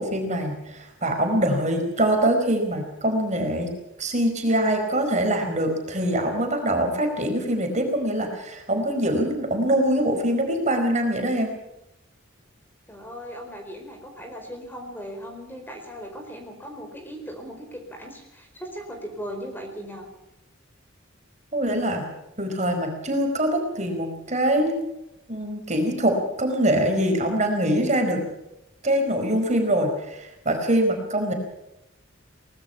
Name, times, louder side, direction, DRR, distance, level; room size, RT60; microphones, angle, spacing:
voice 1, 0.0-3.7 4.0-11.5 21.5-22.0 22.4-24.9 25.3-28.2 28.8-31.3, right 1 dB, 35° right, 4 dB, 4.7 m, -24 dB
voice 2, 12.9-20.1, equal, 10° left, 3 dB, 4.6 m, -38 dB
23.5 x 20.0 x 5.8 m, 0.88 s
head